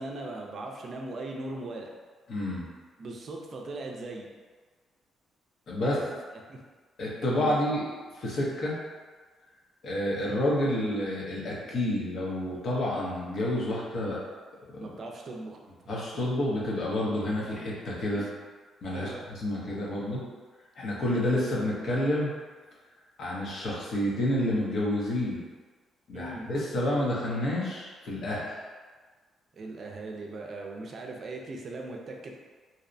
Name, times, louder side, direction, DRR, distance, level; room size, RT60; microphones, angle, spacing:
voice 1, 0.0-1.9 3.0-4.3 5.8-6.0 6.5-6.6 7.5-7.6 14.8-15.6 18.9-19.2 26.1-26.5 29.5-32.3, right 2 dB, 50° right, 1 dB, 0.4 m, -39 dB
voice 2, 2.3-2.7 5.7-6.0 7.0-7.8 8.1-8.8 9.8-14.2 15.9-18.2 18.8-20.2 20.8-22.3 23.2-25.4 26.1-28.5, left 1 dB, 60° left, -5 dB, 0.7 m, -29 dB
2.6 x 2.1 x 2.5 m, 1.4 s
cardioid pair, 90°, 0 cm